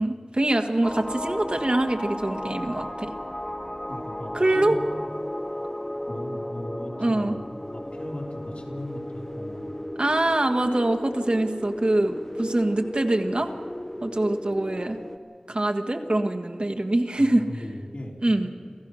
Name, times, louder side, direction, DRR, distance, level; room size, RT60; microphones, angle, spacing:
voice 1, 0.0-3.1 4.3-4.8 7.0-7.4 10.0-13.5 14.0-15.0 15.5-17.5 18.2-18.5, right 1 dB, 50° right, 5 dB, 1.6 m, -24 dB
Relax Ambient Sea Music Short, 0.8-15.2, left 1 dB, 20° left, 1.1 m, -35 dB
voice 2, 3.9-4.8 6.1-7.4 7.7-9.8 17.2-18.1, left 1 dB, 70° left, -2 dB, 3.7 m, -38 dB
27.0 x 15.0 x 6.4 m, 2.3 s
wide cardioid pair, 45°, 2 cm